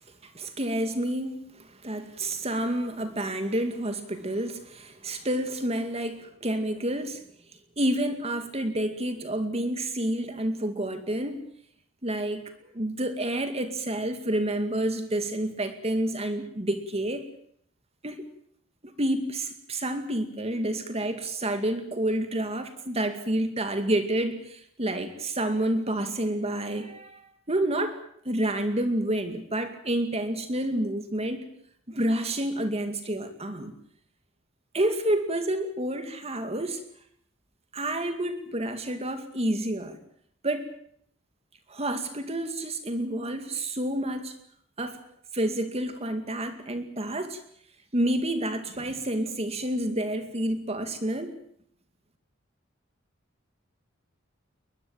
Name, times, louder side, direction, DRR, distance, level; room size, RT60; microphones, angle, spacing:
voice 1, 0.2-7.2 7.8-11.4 12.0-17.3 18.0-18.3 19.0-28.0 28.2-31.5 31.9-33.7 34.7-36.8 37.7-40.0 40.4-40.7 41.7-44.4 44.8-45.0 45.3-47.4 47.9-51.3, right 1 dB, 30° right, 8 dB, 2.3 m, -29 dB
21.5 x 21.5 x 8.8 m, 0.66 s
head